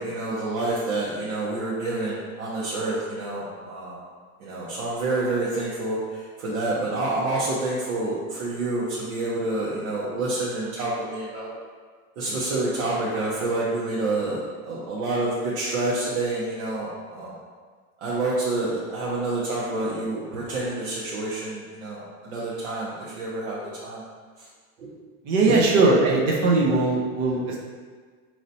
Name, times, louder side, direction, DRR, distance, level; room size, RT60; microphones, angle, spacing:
voice 1, 0.0-4.0 4.4-11.5 12.2-17.3 18.0-24.0 24.8-24.9 25.5-25.6, right 2 dB, 85° right, -8 dB, 1.0 m, -28 dB
voice 2, 25.3-27.6, right 3 dB, 30° right, -1 dB, 0.5 m, -20 dB
5.1 x 3.0 x 2.7 m, 1.5 s
supercardioid pair, 165°, 41 cm